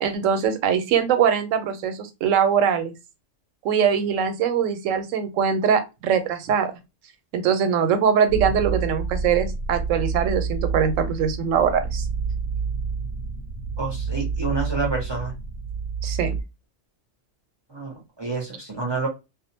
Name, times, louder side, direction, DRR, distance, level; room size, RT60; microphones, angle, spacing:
voice 1, 0.0-2.9 3.6-6.7 7.3-12.1 16.0-16.4, right 7 dB, 90° right, 0.9 m, -22 dB
sound 1, 8.3-16.4, right 5 dB, 85° left, 0.9 m, -28 dB
voice 2, 13.8-15.3 17.7-19.1, right 3 dB, 30° right, 0.5 m, -28 dB
2.5 x 2.0 x 2.7 m
omnidirectional pair, 1.3 m